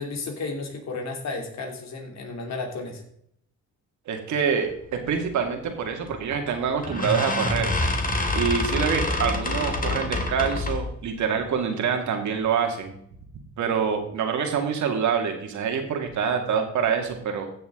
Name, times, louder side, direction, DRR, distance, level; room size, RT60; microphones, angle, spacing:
voice 1, 0.0-3.0, left 3 dB, 60° left, 3 dB, 2.9 m, -33 dB
voice 2, 4.1-7.7 8.3-12.9 13.6-17.5, right 6 dB, 70° right, 4 dB, 2.2 m, -26 dB
sound 1, 6.1-6.3 6.8-10.9, left 2 dB, 30° left, 2.1 m, -26 dB
15.0 x 6.9 x 3.8 m, 0.70 s
cardioid pair, 90°, 30 cm